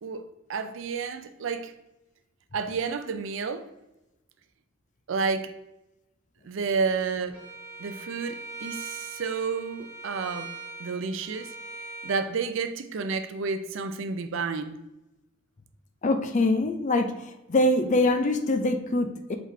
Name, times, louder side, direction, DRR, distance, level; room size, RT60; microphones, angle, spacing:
voice 1, 0.0-1.7 2.5-3.7 5.1-5.5 6.4-7.4 7.8-10.5 10.8-11.5 12.0-14.8, right 5 dB, 65° right, 9 dB, 0.4 m, -30 dB
Bowed string instrument, 7.3-12.2, right 3 dB, 10° right, 1.4 m, -41 dB
voice 2, 16.0-17.1 17.5-19.4, left 2 dB, 35° left, 7 dB, 0.4 m, -23 dB
4.7 x 3.9 x 2.7 m, 0.95 s
head